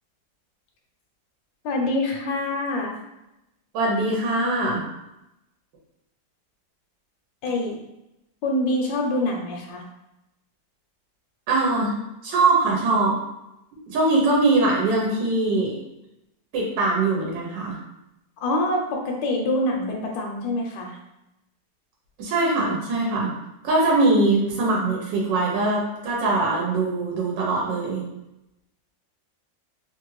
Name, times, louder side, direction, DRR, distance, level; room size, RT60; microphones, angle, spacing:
voice 1, 1.6-3.0 7.4-7.8 8.4-9.8 18.4-21.0, left 1 dB, 80° left, 0 dB, 1.3 m, -25 dB
voice 2, 3.7-4.8 11.5-12.0 12.2-13.2 13.9-15.8 16.5-17.8 22.2-23.3 23.6-28.0, right 2 dB, 75° right, -3 dB, 1.3 m, -22 dB
3.2 x 2.3 x 3.0 m, 0.90 s
omnidirectional pair, 2.0 m